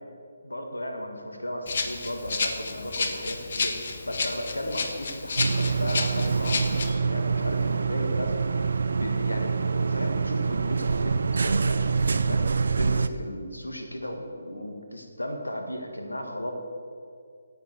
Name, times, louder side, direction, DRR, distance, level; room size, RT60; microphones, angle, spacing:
voice 1, 0.4-3.8 4.0-8.3 8.9-12.4 12.8-16.5, equal, 85° left, 3 dB, 1.8 m, -35 dB
Rattle (instrument), 1.7-6.9, left 4 dB, 50° left, 1.1 m, -31 dB
sound 1, 5.4-13.1, right 4 dB, 60° right, 0.5 m, -25 dB
10.5 x 7.9 x 6.9 m, 2.3 s
figure-of-eight pair, 145°, 0 cm